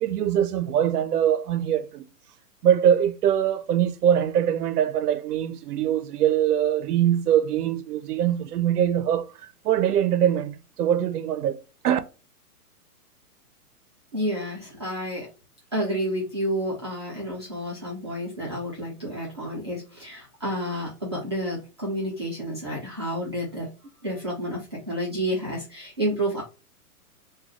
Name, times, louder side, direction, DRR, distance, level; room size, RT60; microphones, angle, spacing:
voice 1, 0.0-2.1 2.6-12.0, right 10 dB, 80° right, 0.6 m, -23 dB
voice 2, 14.1-15.3 15.7-23.7 24.0-26.4, equal, 20° right, 0.4 m, -30 dB
3.7 x 2.3 x 3.0 m
hypercardioid pair, 160°, 46 cm